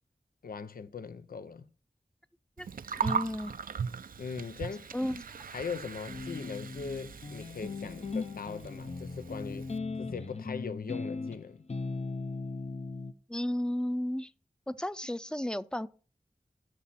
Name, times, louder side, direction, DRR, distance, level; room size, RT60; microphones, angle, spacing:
voice 1, 0.4-1.7 4.2-4.9 5.5-9.7 10.0-11.7, left 5 dB, 90° left, 0.5 m, -40 dB
Gurgling, 2.6-9.8, right 6 dB, 75° right, 0.4 m, -39 dB
voice 2, 3.0-3.5 4.9-5.2 13.3-14.3 14.7-15.9, left 1 dB, 5° left, 0.5 m, -33 dB
sound 1, 6.1-13.1, left 3 dB, 50° left, 0.7 m, -38 dB
11.5 x 6.1 x 4.2 m
wide cardioid pair, 40°, 15 cm